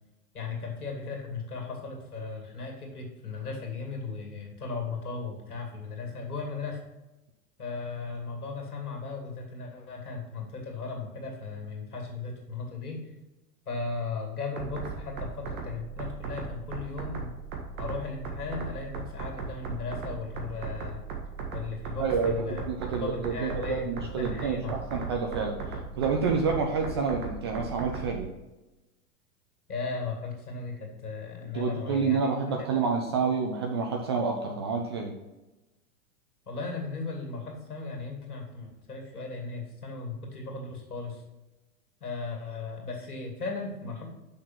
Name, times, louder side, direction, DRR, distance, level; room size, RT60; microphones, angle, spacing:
voice 1, 0.3-6.8 7.6-13.0 13.7-17.3 17.8-21.0 21.5-22.6 23.0-24.8 29.7-32.7 36.5-41.2 42.0-44.1, left 4 dB, 70° left, 1 dB, 2.5 m, -36 dB
sound 1, 14.6-28.2, right 5 dB, 65° right, 1.9 m, -38 dB
voice 2, 22.0-25.6 26.0-28.3 31.5-35.1, right 5 dB, 20° right, 2 dB, 0.3 m, -28 dB
6.3 x 5.8 x 5.8 m, 1.0 s
figure-of-eight pair, 90°, 46 cm